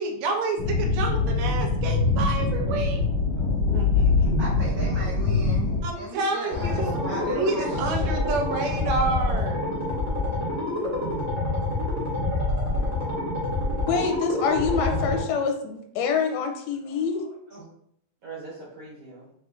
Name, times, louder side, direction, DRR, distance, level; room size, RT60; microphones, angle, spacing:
voice 1, 0.0-3.0 5.8-9.6, right 3 dB, 75° right, 2 dB, 2.0 m, -29 dB
sound 1, 0.6-5.8, left 4 dB, 60° left, 1.3 m, -23 dB
voice 2, 3.7-4.5 10.5-11.1 18.2-19.3, right 3 dB, 60° right, -7 dB, 1.7 m, -42 dB
voice 3, 4.4-8.2 12.6-12.8 16.8-17.6, right 2 dB, 45° right, -11 dB, 1.3 m, -37 dB
sound 2, 6.5-15.2, left 2 dB, 20° right, 0.4 m, -27 dB
voice 4, 13.8-17.2, left 5 dB, 80° left, 3 dB, 1.7 m, -26 dB
4.9 x 3.4 x 2.4 m, 0.69 s
omnidirectional pair, 3.4 m